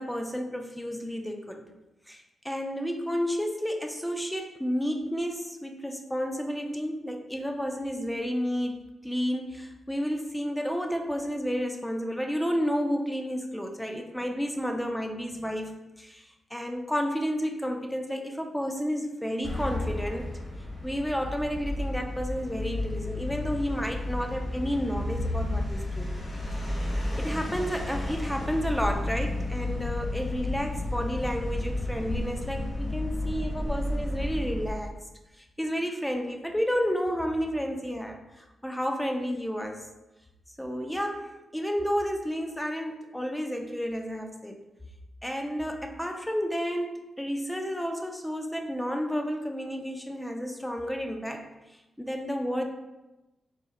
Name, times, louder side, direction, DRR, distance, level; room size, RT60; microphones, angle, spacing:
voice 1, 0.0-1.7 2.1-20.3 20.8-26.1 27.2-34.9 35.4-39.9 40.6-44.6 45.2-51.4 52.0-52.7, equal, 5° left, 3 dB, 0.5 m, -31 dB
sound 1, 19.4-34.9, left 1 dB, 40° left, 1.1 m, -32 dB
4.2 x 2.1 x 3.6 m, 1.0 s
cardioid pair, 80°, 0 cm